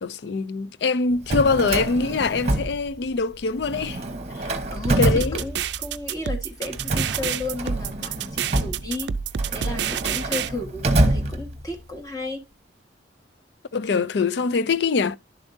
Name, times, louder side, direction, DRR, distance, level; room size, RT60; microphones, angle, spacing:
voice 1, 0.0-4.0 5.0-5.4 13.7-15.2, left 4 dB, 65° left, 0.4 m, -23 dB
Drawer open or close, 1.1-3.3 3.6-6.0 6.6-11.9, right 1 dB, 35° right, 1.0 m, -26 dB
voice 2, 4.7-9.1 9.5-12.4, left 2 dB, 20° left, 1.6 m, -33 dB
sound 1, 4.8-10.5, right 8 dB, 70° right, 0.4 m, -28 dB
11.0 x 7.1 x 2.7 m
head